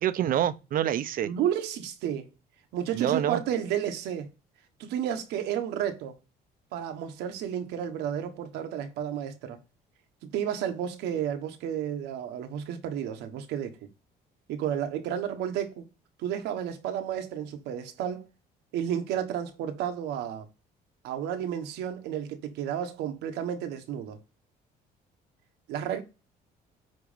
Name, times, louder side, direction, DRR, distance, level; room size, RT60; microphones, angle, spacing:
voice 1, 0.0-1.3 2.9-3.4, right 11 dB, 55° right, 0.7 m, -26 dB
voice 2, 1.2-2.3 2.7-4.3 4.8-6.2 6.7-9.6 10.3-13.8 14.5-15.9 16.2-18.2 18.7-20.5 21.0-24.2 25.7-26.0, right 9 dB, 85° right, 1.3 m, -32 dB
9.4 x 3.1 x 5.1 m
cardioid pair, 110°, 17 cm